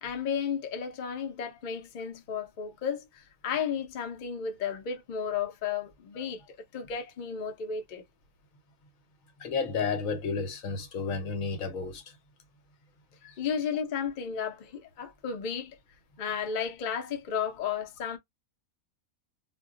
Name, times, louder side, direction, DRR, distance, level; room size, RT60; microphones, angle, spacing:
voice 1, 0.0-8.0 13.4-15.8 16.2-18.2, left 7 dB, 50° left, 0.6 m, -33 dB
voice 2, 9.4-12.0 13.2-13.4, left 4 dB, 75° left, 1.1 m, -32 dB
2.3 x 2.2 x 3.6 m
omnidirectional pair, 1.5 m